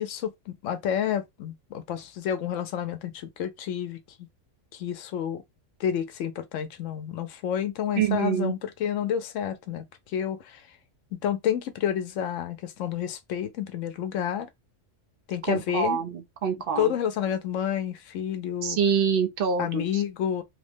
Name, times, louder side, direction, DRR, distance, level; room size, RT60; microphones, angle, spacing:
voice 1, 0.0-4.3 4.7-5.4 5.8-9.8 10.1-10.6 11.1-14.5 15.3-16.0 16.8-18.8 19.6-20.4, left 9 dB, 75° left, 0.9 m, -29 dB
voice 2, 8.0-8.5 15.5-16.9 18.6-20.0, right 7 dB, 55° right, 0.7 m, -26 dB
2.8 x 2.1 x 3.2 m
omnidirectional pair, 1.3 m